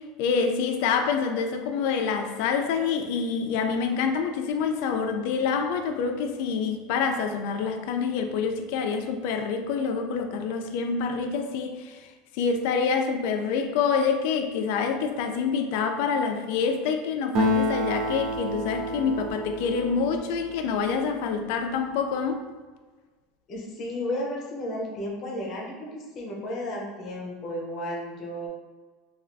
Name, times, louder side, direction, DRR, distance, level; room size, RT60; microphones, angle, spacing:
voice 1, 0.2-12.0 12.4-22.4, left 5 dB, 65° left, 5 dB, 0.3 m, -27 dB
Acoustic guitar, 17.3-21.1, left 1 dB, 50° right, 0.4 m, -29 dB
voice 2, 23.5-28.5, left 1 dB, 35° left, -1 dB, 0.7 m, -33 dB
3.3 x 2.3 x 2.5 m, 1.4 s
supercardioid pair, 150°, 0 cm